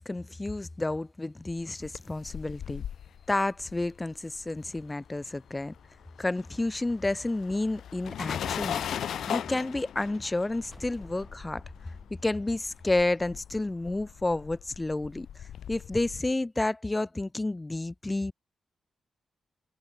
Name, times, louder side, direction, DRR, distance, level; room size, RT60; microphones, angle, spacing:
voice 1, 0.0-2.8 3.3-5.7 6.2-8.8 9.3-11.6 12.2-15.3 15.7-18.3, left 2 dB, 15° left, 0.3 m, -30 dB
sound 1, 1.6-5.2 5.5-16.2, left 9 dB, 85° left, 1.1 m, -39 dB
sound 2, 10.7-14.1, equal, ahead, 2.4 m, -53 dB
wide cardioid pair, 130°, 0 cm